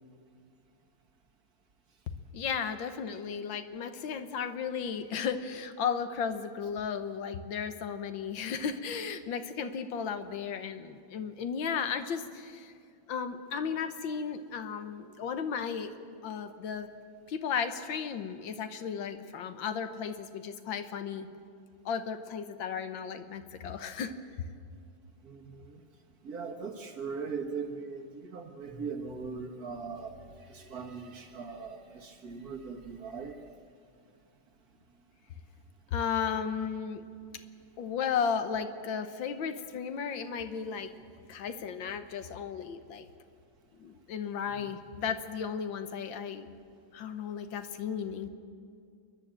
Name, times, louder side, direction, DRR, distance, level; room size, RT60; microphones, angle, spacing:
voice 1, 2.3-12.7 13.1-16.0 16.2-16.9 17.3-21.3 21.9-24.1 35.9-37.0 37.8-40.9 41.3-43.1 43.8-46.5 46.9-48.3, left 6 dB, 75° left, 9 dB, 1.7 m, -34 dB
voice 2, 25.2-25.8 26.2-33.4 44.5-44.7, right 5 dB, 50° right, 5 dB, 1.8 m, -40 dB
28.5 x 11.0 x 8.9 m, 2.3 s
omnidirectional pair, 2.1 m